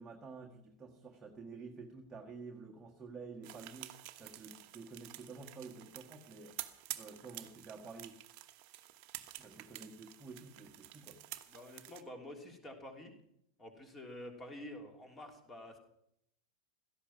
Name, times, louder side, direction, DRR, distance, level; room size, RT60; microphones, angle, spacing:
voice 1, 0.0-6.6 6.9-8.1 9.4-11.2, right 4 dB, 15° right, 0 dB, 1.6 m, -50 dB
sound 1, 3.4-12.0, right 15 dB, 40° right, 1.1 m, -50 dB
voice 2, 11.5-13.2 13.6-15.8, left 1 dB, 15° left, 4 dB, 3.2 m, -49 dB
17.0 x 13.5 x 6.1 m, 0.75 s
figure-of-eight pair, 90°, 0 cm